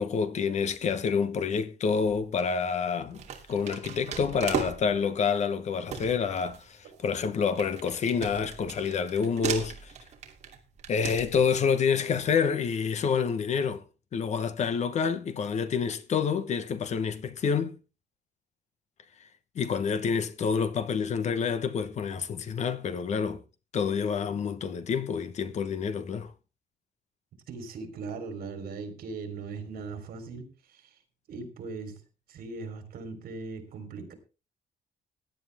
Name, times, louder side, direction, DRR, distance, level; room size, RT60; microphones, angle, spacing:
voice 1, 0.0-3.2 3.5-9.9 10.9-13.8 14.1-17.8 19.5-23.4 23.7-26.3, left 6 dB, 45° left, 1.1 m, -28 dB
sound 1, 2.1-2.4 3.1-5.1 5.5-5.6 5.9-11.7, right 6 dB, 45° right, 2.8 m, -37 dB
voice 2, 27.5-31.0 31.3-32.0 32.3-34.1, right 4 dB, 65° right, 3.8 m, -39 dB
17.0 x 10.5 x 3.5 m
cardioid pair, 175°, 16 cm